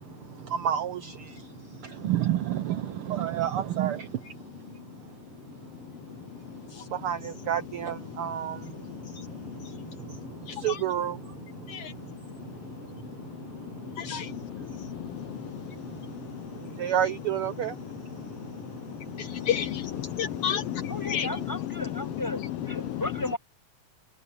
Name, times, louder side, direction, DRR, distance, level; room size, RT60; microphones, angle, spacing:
voice 1, 0.5-1.1 2.0-4.1 7.0-8.6 10.6-11.2 16.8-17.7, right 11 dB, 90° right, 1.2 m, -28 dB
voice 2, 8.6-10.8 11.7-11.9 12.3-12.9 13.3-16.9 17.9-22.1 22.7-23.0, left 10 dB, 75° left, 1.4 m, -35 dB
voice 3, 20.9-23.4, left 2 dB, 5° left, 7.2 m, -35 dB
omnidirectional pair, 3.4 m